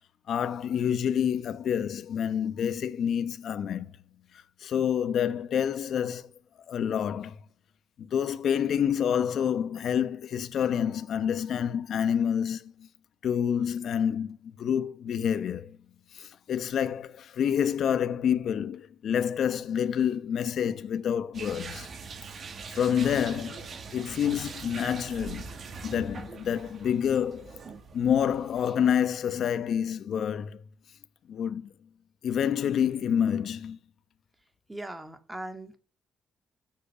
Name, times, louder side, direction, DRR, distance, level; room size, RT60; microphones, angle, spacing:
voice 1, 0.3-3.9 4.6-6.3 6.7-7.4 8.0-12.9 13.2-15.8 16.1-21.9 22.7-23.7 23.9-25.5 25.8-27.5 27.9-30.6 31.3-31.7 32.2-33.8, left 8 dB, 65° left, 1.0 m, -28 dB
sound 1, 21.3-29.0, right 5 dB, 50° right, 2.2 m, -42 dB
voice 2, 34.7-35.8, right 1 dB, 15° right, 2.4 m, -39 dB
13.5 x 7.8 x 7.1 m
cardioid pair, 90°, 0 cm